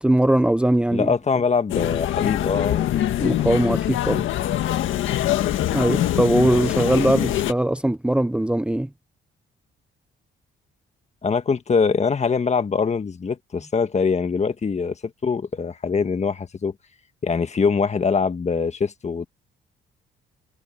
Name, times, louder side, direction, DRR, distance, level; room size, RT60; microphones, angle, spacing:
voice 1, 0.0-1.1 3.2-4.3 5.7-8.9, right 1 dB, 5° right, 0.8 m, -20 dB
voice 2, 0.9-3.0 6.5-6.6 11.2-15.0 15.2-16.7 17.2-19.3, left 5 dB, 35° left, 1.6 m, -23 dB
sound 1, 1.7-7.5, left 12 dB, 80° left, 1.7 m, -23 dB
cardioid pair, 90°, 20 cm